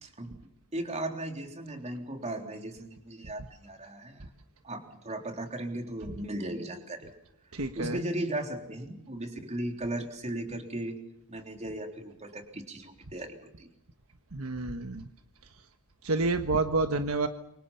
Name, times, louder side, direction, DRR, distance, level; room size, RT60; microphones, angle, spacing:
voice 1, 0.0-4.3 4.6-7.1 7.8-11.0 11.3-13.7, right 1 dB, 30° right, 4 dB, 3.7 m, -37 dB
voice 2, 7.5-8.0 14.3-15.1 16.0-17.3, right 3 dB, 70° right, 7 dB, 1.4 m, -29 dB
29.0 x 25.0 x 5.7 m, 0.78 s
head